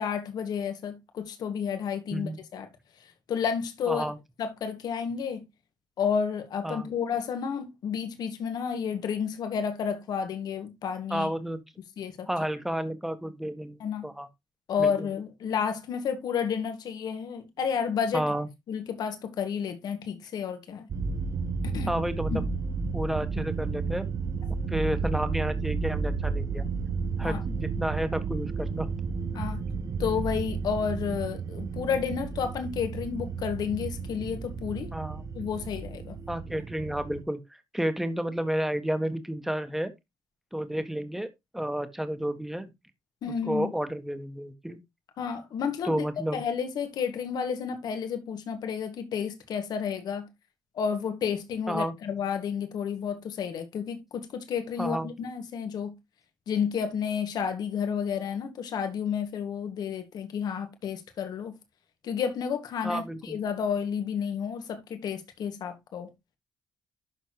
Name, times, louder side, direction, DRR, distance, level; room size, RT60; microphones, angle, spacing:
voice 1, 0.0-2.7 3.3-4.0 4.4-5.4 6.0-11.3 12.0-12.3 13.8-14.1 14.7-18.3 18.7-20.9 21.6-21.9 22.3-22.4 27.2-27.4 29.3-29.6 30.0-34.9 35.4-36.2 43.2-43.7 45.2-46.0 46.3-50.3 50.8-56.0 56.5-61.6 62.0-66.1, left 7 dB, 70° left, 1.8 m, -31 dB
voice 2, 3.9-4.2 6.6-6.9 11.1-11.6 12.3-13.8 14.0-14.3 14.8-14.9 18.1-18.5 21.9-22.5 22.9-24.1 24.7-26.7 27.2-28.9 29.4-29.5 34.9-35.3 36.3-39.9 40.5-42.7 43.5-44.8 45.8-46.4 51.7-52.0 54.8-55.1 62.8-63.4, right 1 dB, 5° right, 1.5 m, -31 dB
sound 1, 20.9-37.2, right 4 dB, 50° right, 0.8 m, -32 dB
12.0 x 4.4 x 3.0 m
cardioid pair, 90°, 7 cm